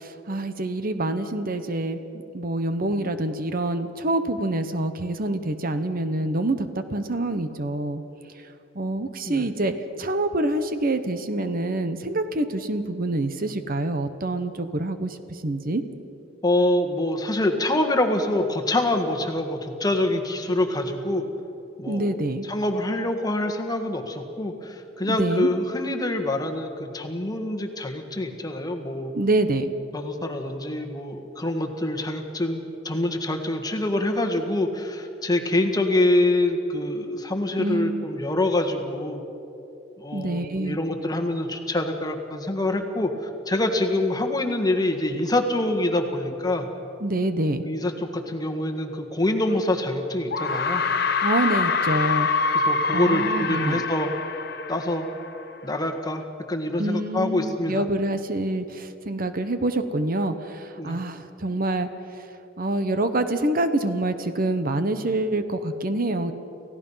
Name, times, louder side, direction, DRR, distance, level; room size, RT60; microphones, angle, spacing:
voice 1, 0.0-2.0 2.3-8.0 8.8-9.7 10.0-15.2 15.4-15.8 21.9-22.5 25.1-25.5 29.1-29.7 37.6-38.0 40.1-40.8 47.0-47.6 51.2-52.3 52.9-53.8 56.8-61.9 62.6-66.3, right 2 dB, 50° right, 9 dB, 1.0 m, -26 dB
voice 2, 16.4-21.3 21.8-29.1 29.9-39.2 40.0-46.7 47.6-50.8 52.6-54.1 54.7-55.1 55.6-56.2 56.5-57.8 60.8-61.0, left 1 dB, 20° left, 5 dB, 1.6 m, -25 dB
sound 1, 49.5-49.6 50.3-55.5, left 4 dB, 55° left, 0.9 m, -25 dB
29.5 x 16.0 x 5.7 m, 2.7 s
head